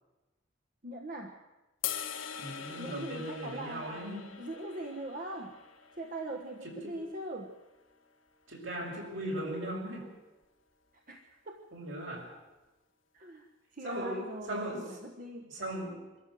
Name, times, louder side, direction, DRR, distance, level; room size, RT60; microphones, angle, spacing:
voice 1, 0.8-1.4 2.8-4.0 4.4-5.6 6.0-7.5 10.9-11.6 13.1-15.6, right 1 dB, 45° right, 2 dB, 1.4 m, -42 dB
sound 1, 1.8-8.1, left 9 dB, 85° left, 1.6 m, -43 dB
voice 2, 2.3-4.4 6.8-7.0 8.5-10.1 11.7-12.3 13.8-14.2 14.5-14.8 15.4-16.1, right 1 dB, 70° right, -1 dB, 6.3 m, -38 dB
24.5 x 13.5 x 7.8 m, 1.1 s
head